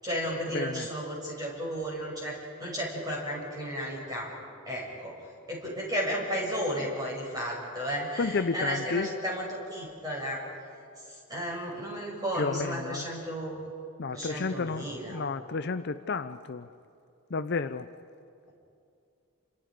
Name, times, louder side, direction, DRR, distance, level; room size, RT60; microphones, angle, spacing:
voice 1, 0.0-4.3 4.7-5.2 5.5-10.4 11.1-13.7 14.1-15.3, equal, 15° right, -3 dB, 6.4 m, -33 dB
voice 2, 0.5-0.9 8.2-9.1 12.4-13.1 14.0-16.7 17.3-17.9, left 4 dB, 50° left, 11 dB, 0.5 m, -31 dB
29.0 x 27.0 x 5.1 m, 2.6 s
head